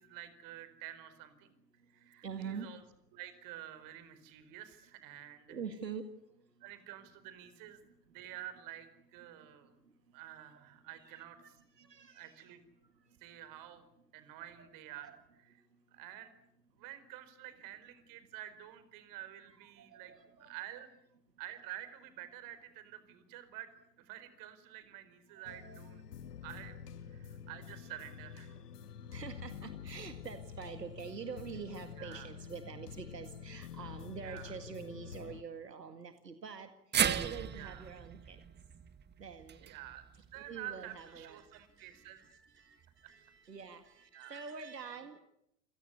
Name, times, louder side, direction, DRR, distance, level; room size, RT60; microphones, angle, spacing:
voice 1, 0.0-1.5 1.9-2.8 3.1-5.6 6.6-7.8 8.1-9.8 10.1-11.6 12.1-12.6 13.2-13.9 14.1-15.2 15.9-16.3 16.8-20.1 20.4-20.9 21.4-26.0 26.4-26.8 27.0-28.6 32.0-32.3 34.2-34.5 37.5-37.9 39.6-42.2 43.0-43.1 44.1-44.4, right 12 dB, 40° right, 12 dB, 4.7 m, -49 dB
voice 2, 2.2-2.7 5.5-6.1 6.6-6.7 10.5-10.6 11.0-12.5 14.6-15.2 19.5-20.6 25.3-25.8 29.1-36.7 37.2-38.4 39.2-39.7 40.1-45.2, right 6 dB, 85° right, 8 dB, 2.1 m, -46 dB
sound 1, 25.5-35.4, left 7 dB, 70° left, 1.6 m, -48 dB
sound 2, 36.9-41.2 41.5-41.6 42.8-42.9, right 8 dB, 20° right, 1.8 m, -36 dB
29.0 x 17.0 x 9.8 m, 0.80 s
figure-of-eight pair, 95°, 48 cm